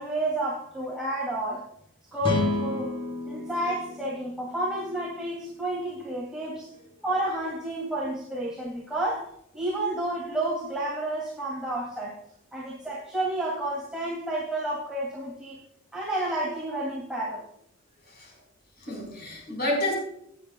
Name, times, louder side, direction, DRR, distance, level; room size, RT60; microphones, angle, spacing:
voice 1, 0.0-1.6 2.1-3.0 3.2-6.7 7.0-9.3 9.5-12.1 12.5-15.6 15.9-17.5, right 1 dB, 5° right, -7 dB, 2.7 m, -30 dB
sound 1, 2.2-5.5, left 1 dB, 25° left, 4.2 m, -32 dB
voice 2, 18.8-19.9, left 1 dB, 50° left, 0 dB, 4.9 m, -30 dB
17.5 x 10.0 x 2.3 m, 0.72 s
head